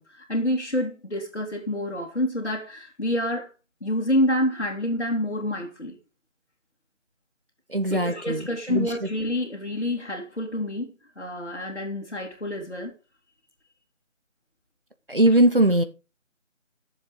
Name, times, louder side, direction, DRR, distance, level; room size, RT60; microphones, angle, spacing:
voice 1, 0.0-3.5 3.8-6.0 7.9-12.9, left 1 dB, 55° left, 2.4 m, -28 dB
voice 2, 7.7-8.4 8.7-8.9 15.1-15.8, right 1 dB, 45° right, 0.9 m, -20 dB
11.5 x 7.3 x 3.8 m
figure-of-eight pair, 175°, 39 cm